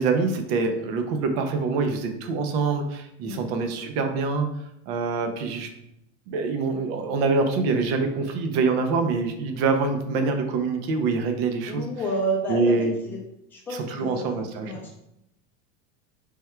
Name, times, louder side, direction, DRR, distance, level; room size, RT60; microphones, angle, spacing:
voice 1, 0.0-4.5 4.9-5.7 6.3-11.8 12.5-12.9 13.9-14.7, right 4 dB, 55° right, 5 dB, 0.7 m, -25 dB
voice 2, 11.7-12.8 13.0-13.2 13.5-14.9, right 1 dB, 5° left, -3 dB, 0.5 m, -30 dB
3.5 x 3.3 x 4.4 m, 0.82 s
supercardioid pair, 175°, 37 cm